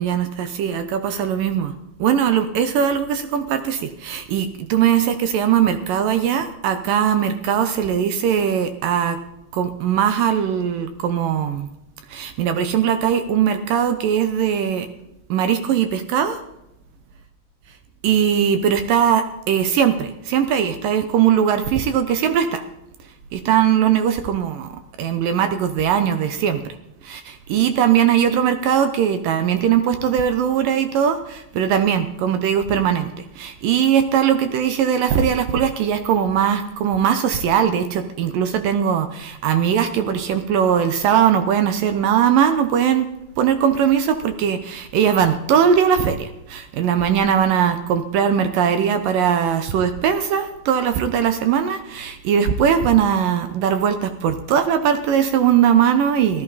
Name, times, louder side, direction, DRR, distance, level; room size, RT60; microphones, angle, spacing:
voice 1, 0.0-1.7 2.0-9.2 9.5-11.7 12.1-14.9 15.3-16.4 18.0-22.6 23.3-24.7 25.0-26.8 27.0-43.1 43.4-56.4, right 8 dB, 75° right, 8 dB, 2.2 m, -20 dB
16.5 x 13.5 x 4.1 m, 0.85 s
omnidirectional pair, 4.7 m